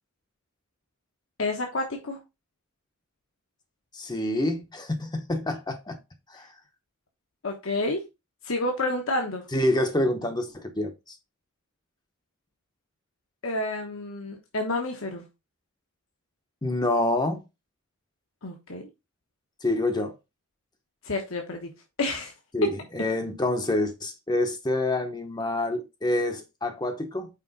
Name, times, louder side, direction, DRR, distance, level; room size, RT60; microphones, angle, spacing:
voice 1, 1.4-2.2 7.4-8.0 8.4-9.4 13.4-15.2 18.4-18.9 21.0-21.7 22.0-22.3, left 2 dB, 70° left, 1.2 m, -29 dB
voice 2, 3.9-6.0 6.3-6.5 9.5-11.2 16.6-17.4 19.6-20.1 22.5-27.3, left 1 dB, 20° left, 0.8 m, -27 dB
5.7 x 4.8 x 4.0 m
head